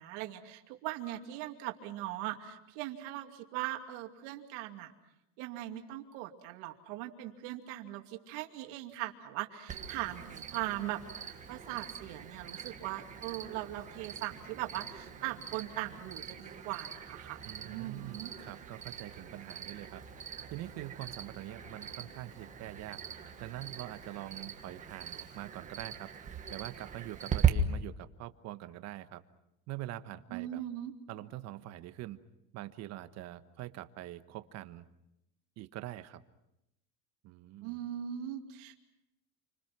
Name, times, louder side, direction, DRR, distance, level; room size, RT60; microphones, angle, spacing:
voice 1, 0.0-4.9 5.4-18.3 30.3-30.9 37.6-38.8, right 14 dB, 75° right, 4 dB, 2.7 m, -40 dB
Cricket, 9.7-27.5, right 9 dB, 20° right, 1.5 m, -40 dB
sound 1, 10.1-25.1, left 3 dB, 75° left, 7.0 m, -62 dB
voice 2, 17.4-20.0 20.5-23.0 23.4-26.1 26.5-29.2 29.7-30.6 31.1-32.2 32.5-34.8 35.6-36.2 37.2-37.8, right 14 dB, 45° right, 11 dB, 1.2 m, -44 dB
29.0 x 25.5 x 6.0 m, 0.89 s
cardioid pair, 160°, 36 cm